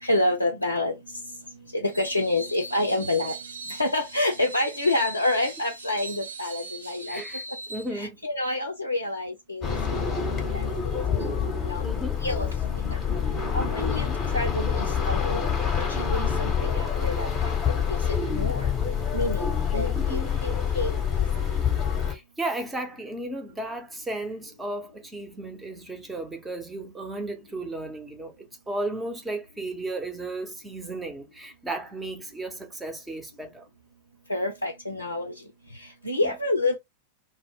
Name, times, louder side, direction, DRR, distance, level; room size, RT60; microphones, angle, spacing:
voice 1, 0.0-1.0 1.7-3.4 3.7-7.2 7.9-10.1 10.5-10.7 11.2-11.3 11.6-11.8 12.2-13.0 13.5-14.1 14.3-15.4 15.9-17.5 17.9-18.0 18.3-18.7 19.1-20.9 34.3-35.3 35.8-36.8, left 2 dB, 85° left, 0.4 m, -28 dB
Screech, 1.9-7.9, right 3 dB, 70° right, 0.6 m, -40 dB
voice 2, 7.1-7.4 7.7-8.2 11.8-12.2 13.8-14.2 22.1-33.7 36.2-36.3, right 2 dB, 10° right, 0.7 m, -34 dB
sound 1, 9.6-22.1, left 7 dB, 20° left, 0.9 m, -26 dB
2.1 x 2.1 x 3.4 m
figure-of-eight pair, 90°, 0 cm